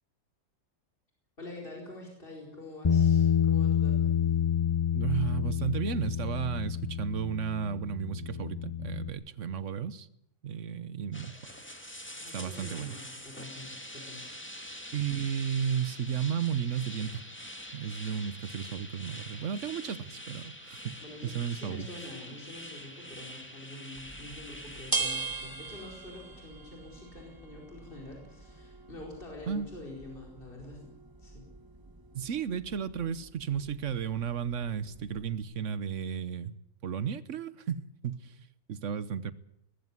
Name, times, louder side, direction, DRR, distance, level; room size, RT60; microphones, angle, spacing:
voice 1, 1.4-4.2 12.1-14.2 21.0-30.8 31.2-31.5, left 2 dB, 40° left, 4.9 m, -46 dB
Bass guitar, 2.8-9.1, left 8 dB, 25° left, 0.8 m, -28 dB
voice 2, 4.9-10.1 10.4-11.5 11.9-12.0 12.3-13.0 14.9-17.2 17.7-21.0 21.2-21.9 29.5-29.7 32.1-36.5 36.8-39.3, right 8 dB, 65° right, 1.3 m, -33 dB
sound 1, 11.1-24.9, equal, 10° left, 2.3 m, -45 dB
sound 2, 23.9-35.4, right 4 dB, 15° right, 1.7 m, -41 dB
19.5 x 15.0 x 9.7 m
omnidirectional pair, 1.4 m